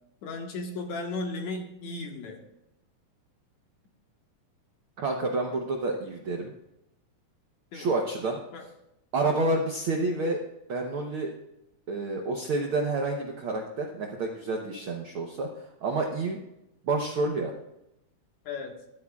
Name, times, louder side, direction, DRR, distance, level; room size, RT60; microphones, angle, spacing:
voice 1, 0.2-2.4 7.7-7.9 8.5-8.7 18.4-18.8, left 3 dB, 65° left, 2 dB, 2.6 m, -35 dB
voice 2, 5.0-6.5 7.7-8.4 9.1-10.4 10.7-11.3 11.9-15.5 15.8-16.4 16.8-17.5, right 2 dB, 65° right, 1 dB, 1.3 m, -29 dB
14.5 x 12.5 x 2.4 m, 0.86 s
omnidirectional pair, 3.7 m